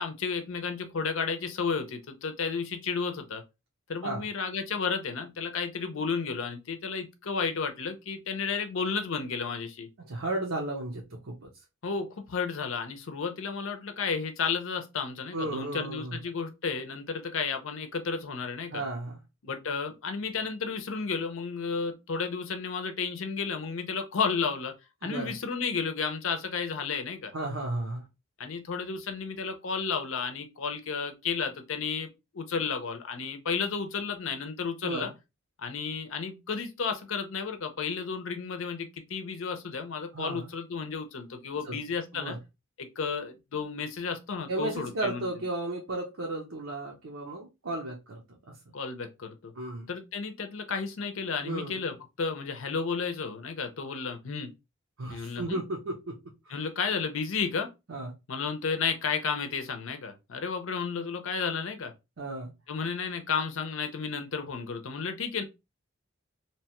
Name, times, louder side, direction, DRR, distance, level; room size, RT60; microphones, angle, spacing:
voice 1, 0.0-3.4 3.9-9.9 11.8-18.8 19.4-24.7 25.0-27.3 28.4-32.1 32.3-35.1 35.6-42.4 42.8-45.3 48.7-49.5 49.9-54.5 55.1-55.6 56.5-57.7 58.3-61.9 62.7-65.4, left 5 dB, 65° left, 0.6 m, -32 dB
voice 2, 10.0-11.5 15.3-16.2 18.7-19.2 25.0-25.4 27.3-28.1 34.8-35.1 40.1-40.5 41.7-41.8 42.1-42.4 44.5-48.6 49.6-49.9 51.4-51.8 55.0-56.2 56.5-56.6 57.9-58.1 62.2-62.5, right 2 dB, 70° right, 0.7 m, -34 dB
2.9 x 2.2 x 2.9 m
head